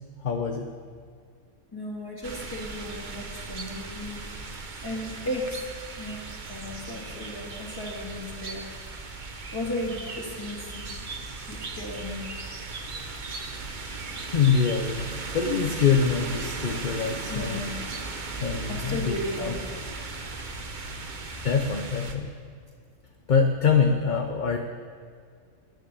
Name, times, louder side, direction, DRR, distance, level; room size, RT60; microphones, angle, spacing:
voice 1, 0.2-0.7 14.2-15.1 15.3-17.6 18.4-19.5 21.4-22.3 23.3-24.6, left 6 dB, 45° left, 3 dB, 0.7 m, -24 dB
voice 2, 1.7-4.5 4.8-5.7 6.0-6.2 6.5-8.6 9.5-11.0 11.4-12.3 17.3-17.7 18.3-19.5 19.8-20.3 20.9-21.0, left 1 dB, 15° left, -2 dB, 2.1 m, -35 dB
sound 1, 2.2-22.1, right 3 dB, 40° right, 1.0 m, -37 dB
11.0 x 10.5 x 6.9 m, 2.1 s
omnidirectional pair, 1.4 m